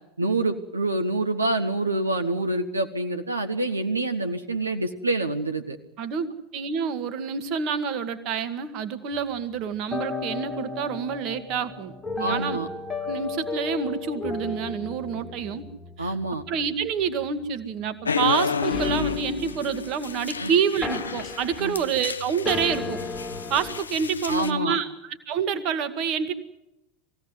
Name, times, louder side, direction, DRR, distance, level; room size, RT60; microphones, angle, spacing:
voice 1, 0.2-5.8 12.2-12.7 16.0-16.4 20.4-20.5 21.6-21.8 24.3-24.8, right 2 dB, 85° right, 6 dB, 1.1 m, -26 dB
voice 2, 6.5-12.6 13.0-15.7 16.0-16.1 16.5-23.0 23.5-26.3, right 7 dB, 45° right, 11 dB, 1.5 m, -28 dB
sound 1, 9.1-20.4 20.8-22.1 22.5-23.9, left 4 dB, 10° left, 1.7 m, -35 dB
sound 2, 18.0-24.5, left 6 dB, 80° left, 0.7 m, -31 dB
20.5 x 16.5 x 9.7 m, 0.92 s
figure-of-eight pair, 80°, 0 cm